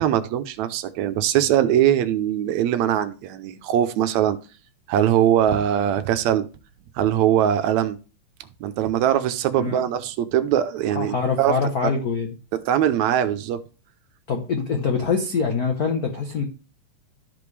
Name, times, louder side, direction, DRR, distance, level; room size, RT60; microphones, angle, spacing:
voice 1, 0.0-4.4 4.9-6.5 7.0-8.0 8.6-11.6 11.8-11.9 12.5-13.6, right 11 dB, 80° right, 2.0 m, -21 dB
voice 2, 10.9-12.3 14.3-16.4, left 5 dB, 85° left, 0.8 m, -24 dB
13.0 x 5.2 x 3.3 m
omnidirectional pair, 3.3 m